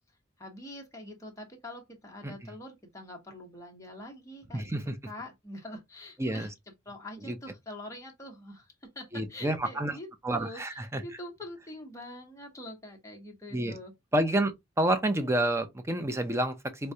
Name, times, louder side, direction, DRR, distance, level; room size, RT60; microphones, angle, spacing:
voice 1, 0.4-4.7 5.1-6.5 6.8-13.9, left 1 dB, 15° left, 1.0 m, -45 dB
voice 2, 4.5-4.9 6.2-6.5 7.3-7.4 9.1-10.0 10.2-11.0 13.5-13.8 14.1-14.5 14.8-16.9, right 1 dB, 15° right, 0.6 m, -29 dB
4.7 x 2.2 x 2.7 m
head